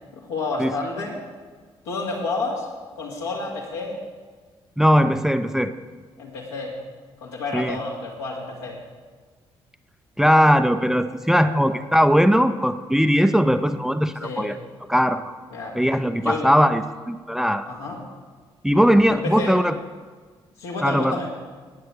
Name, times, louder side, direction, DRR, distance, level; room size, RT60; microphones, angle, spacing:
voice 1, 0.1-1.2 1.9-2.7 3.0-4.0 6.2-6.7 7.2-8.8 11.5-11.7 14.2-14.5 15.5-15.8 16.2-16.5 17.7-18.0 19.1-19.6 20.6-21.3, left 3 dB, 75° left, -2 dB, 2.3 m, -30 dB
voice 2, 4.8-5.7 7.5-7.8 10.2-14.6 14.9-15.2 15.7-17.7 18.6-19.8 20.8-21.2, equal, 5° right, 10 dB, 0.6 m, -19 dB
16.5 x 9.5 x 4.7 m, 1.5 s
figure-of-eight pair, 40°, 14 cm